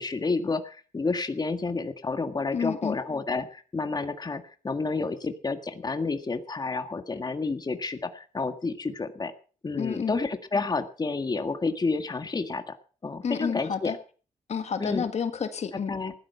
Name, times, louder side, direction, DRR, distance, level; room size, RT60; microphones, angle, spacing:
voice 1, 0.0-9.3 9.6-12.7 13.0-13.9 14.8-15.1 15.9-16.1, left 3 dB, 30° left, 8 dB, 1.7 m, -30 dB
voice 2, 2.5-3.0 9.8-10.1 13.2-14.0 14.5-15.9, left 6 dB, 55° left, 9 dB, 1.7 m, -30 dB
15.5 x 12.0 x 5.6 m, 0.39 s
cardioid pair, 80°, 13 cm